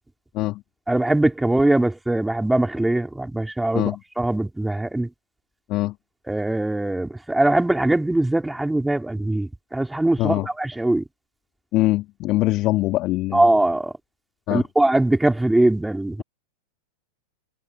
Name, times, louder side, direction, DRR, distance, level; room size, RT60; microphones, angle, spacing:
voice 1, 0.9-5.1 6.3-11.0 13.3-13.9 14.5-16.2, right 1 dB, 5° right, 4.0 m, -21 dB
voice 2, 11.7-13.4 14.5-14.6, left 18 dB, 45° left, 2.8 m, -22 dB
hypercardioid pair, 95°, 0 cm